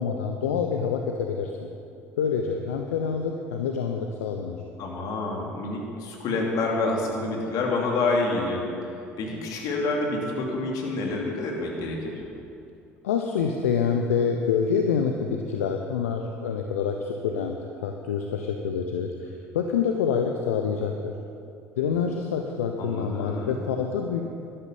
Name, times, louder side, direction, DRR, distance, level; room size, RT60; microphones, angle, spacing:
voice 1, 0.0-1.5 2.2-4.6 13.0-17.6 17.8-21.1 21.8-24.2, left 6 dB, 75° left, 3 dB, 0.8 m, -27 dB
voice 2, 4.8-8.7 9.2-12.2 22.8-23.6, left 2 dB, 55° left, 0 dB, 2.8 m, -28 dB
12.0 x 11.5 x 7.0 m, 2.6 s
figure-of-eight pair, 60°, 8 cm